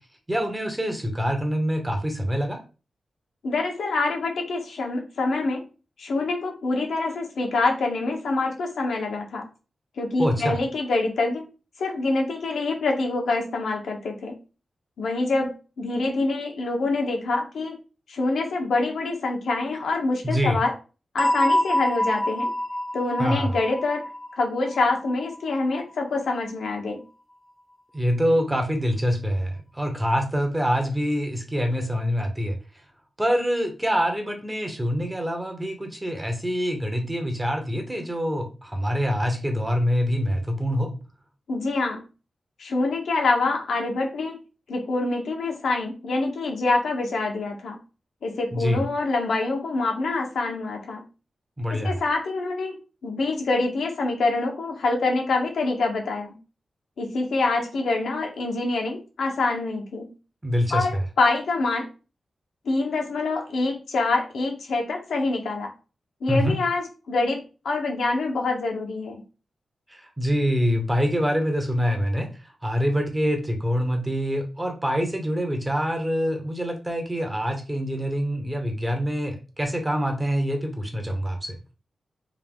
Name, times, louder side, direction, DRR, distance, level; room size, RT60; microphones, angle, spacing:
voice 1, 0.3-2.6 10.2-10.6 20.2-20.6 23.2-23.5 27.9-32.6 33.2-40.9 48.5-48.8 51.6-52.0 60.4-61.0 66.3-66.6 69.9-72.3 72.6-81.6, equal, 15° right, 4 dB, 1.0 m, -25 dB
voice 2, 3.4-5.6 6.0-9.5 10.0-11.5 11.8-14.3 15.0-17.8 18.1-20.7 21.1-22.5 22.9-24.0 24.4-27.0 41.5-42.0 42.6-44.4 44.7-47.8 48.2-51.0 51.7-56.4 57.0-60.1 60.7-61.9 62.6-65.7 66.2-69.2, left 3 dB, 85° left, 1 dB, 1.1 m, -26 dB
sound 1, 21.2-25.8, equal, 10° left, 0.3 m, -26 dB
3.6 x 2.7 x 3.6 m, 0.33 s
wide cardioid pair, 85°, 0 cm